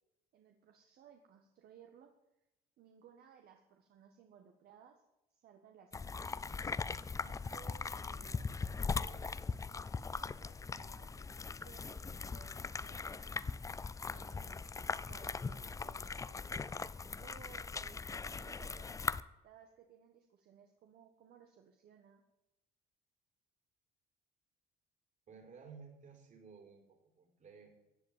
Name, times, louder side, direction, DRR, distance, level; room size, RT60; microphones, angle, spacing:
voice 1, 0.3-2.1 2.8-5.0 5.3-6.4 7.2-9.5 10.1-13.3 14.1-22.2, right 8 dB, 65° right, 4 dB, 1.7 m, -61 dB
sound 1, 5.9-19.2, left 4 dB, 20° left, 0.5 m, -40 dB
voice 2, 25.3-27.7, right 5 dB, 50° right, 4 dB, 4.6 m, -55 dB
15.5 x 8.0 x 9.1 m, 0.93 s
cardioid pair, 110°, 17 cm